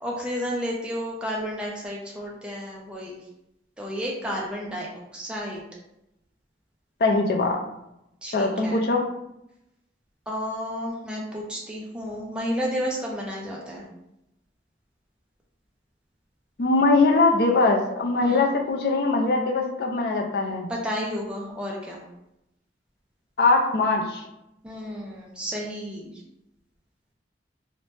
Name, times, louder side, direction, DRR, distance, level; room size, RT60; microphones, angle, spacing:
voice 1, 0.0-3.2 3.8-4.9 5.1-5.6 8.2-8.8 10.3-13.8 18.2-18.5 20.7-22.0 24.6-26.2, equal, 5° right, -3 dB, 0.4 m, -31 dB
voice 2, 7.0-7.6 8.3-9.1 16.6-20.7 23.4-24.2, left 3 dB, 60° left, 2 dB, 0.4 m, -21 dB
2.8 x 2.1 x 3.1 m, 0.85 s
head